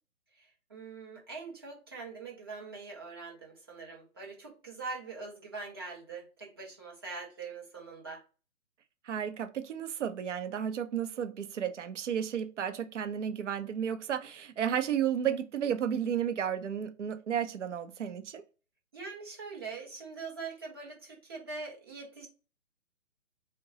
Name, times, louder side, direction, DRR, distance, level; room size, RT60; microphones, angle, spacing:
voice 1, 0.3-8.2 18.9-22.3, right 4 dB, 20° right, 0.6 m, -43 dB
voice 2, 9.1-18.4, right 9 dB, 60° right, 0.6 m, -33 dB
2.7 x 2.2 x 3.8 m
figure-of-eight pair, 140°, 42 cm